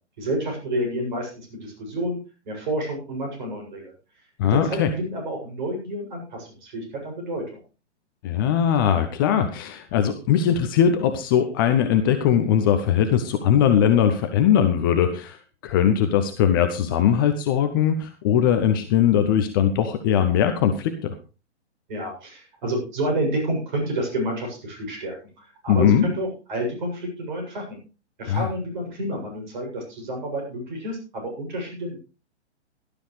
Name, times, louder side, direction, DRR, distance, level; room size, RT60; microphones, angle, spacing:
voice 1, 0.2-2.2 2.5-3.9 4.5-7.6 21.9-27.8 28.2-32.0, right 1 dB, 40° right, 2 dB, 7.3 m, -29 dB
voice 2, 4.4-4.9 8.2-21.2 25.7-26.1 28.3-28.5, left 9 dB, 20° left, 8 dB, 0.6 m, -20 dB
17.5 x 12.0 x 3.2 m, 0.33 s
figure-of-eight pair, 125°, 35 cm